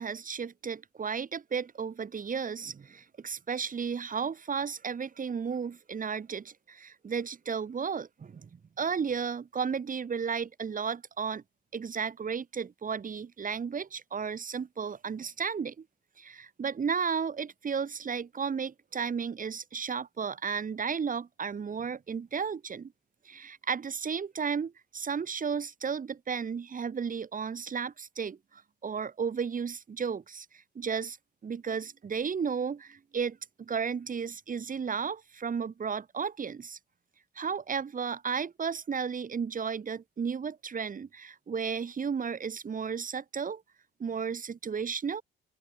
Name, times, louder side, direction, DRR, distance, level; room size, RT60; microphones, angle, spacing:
voice 1, 0.0-11.4 11.7-15.8 16.2-22.9 23.2-31.2 31.4-36.8 37.3-43.6 44.0-45.2, right 6 dB, 45° right, 5.0 m, -34 dB
open air
cardioid pair, 90°, 20 cm